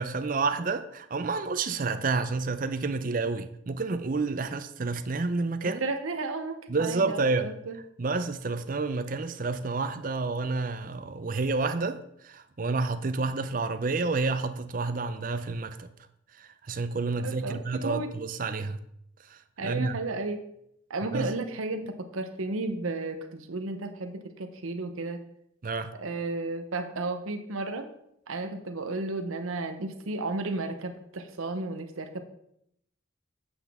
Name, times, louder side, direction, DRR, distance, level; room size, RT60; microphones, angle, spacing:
voice 1, 0.0-5.8 6.7-7.5 8.0-12.0 12.2-15.9 16.4-18.8 19.3-19.9 21.1-21.3 25.6-25.9, right 3 dB, 40° right, 10 dB, 0.5 m, -29 dB
voice 2, 5.6-7.8 17.2-18.1 19.6-20.5 20.9-25.2 25.9-27.9 28.3-32.2, right 2 dB, 85° right, 7 dB, 0.8 m, -33 dB
8.0 x 7.9 x 3.5 m, 0.74 s
head